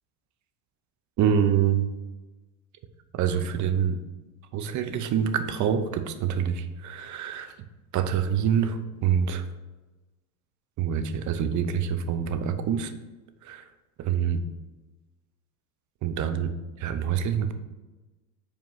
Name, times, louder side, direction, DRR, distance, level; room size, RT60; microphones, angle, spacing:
voice 1, 1.2-1.9 3.1-4.0 4.5-7.6 7.9-9.4 10.8-12.9 13.4-13.6 14.0-14.4 16.0-17.5, right 8 dB, 40° right, 10 dB, 0.7 m, -26 dB
5.2 x 4.5 x 5.6 m, 1.2 s
supercardioid pair, 110°, 45 cm